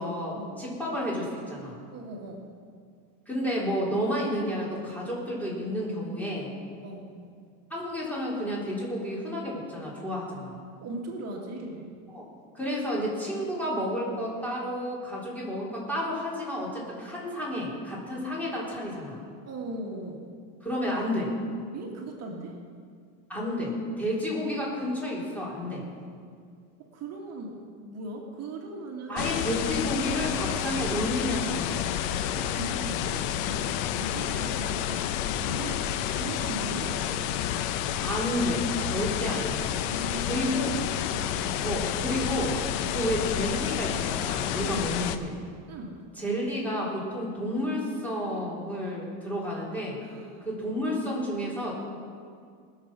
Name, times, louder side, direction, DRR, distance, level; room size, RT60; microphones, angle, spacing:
voice 1, 0.0-1.8 3.3-6.5 7.7-10.6 12.1-12.3 12.5-19.2 20.6-21.3 23.3-25.8 29.1-31.8 38.0-39.7 40.2-40.7 41.6-42.6 42.9-45.3 46.2-50.0 50.4-51.7, equal, 5° left, -6 dB, 3.9 m, -31 dB
voice 2, 1.9-2.5 6.8-7.1 10.8-11.9 19.4-20.3 21.7-22.6 26.8-29.4 32.2-35.1 35.4-37.4 39.8-40.7 41.0-41.6 44.6-44.9 45.7-46.0 50.0-50.4, right 2 dB, 40° right, 0 dB, 1.8 m, -39 dB
sound 1, 29.2-45.2, left 10 dB, 70° left, 0.8 m, -30 dB
20.0 x 7.1 x 6.2 m, 2.2 s
supercardioid pair, 140°, 40 cm